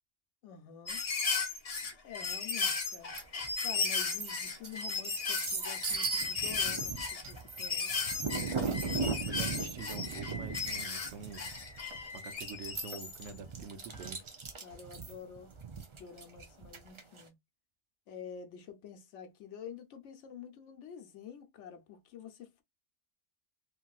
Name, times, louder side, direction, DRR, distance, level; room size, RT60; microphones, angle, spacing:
voice 1, 0.4-1.0 2.0-3.1 3.6-8.0 14.6-15.5 16.0-17.3 18.1-22.6, left 7 dB, 90° left, 1.0 m, -48 dB
sound 1, 0.9-13.3 14.0-14.1, left 4 dB, 40° left, 0.6 m, -35 dB
sound 2, 3.1-3.6 4.0-17.2, right 4 dB, 35° right, 0.5 m, -38 dB
voice 2, 9.0-14.2, right 6 dB, 80° right, 1.0 m, -46 dB
3.0 x 2.5 x 2.3 m
omnidirectional pair, 1.2 m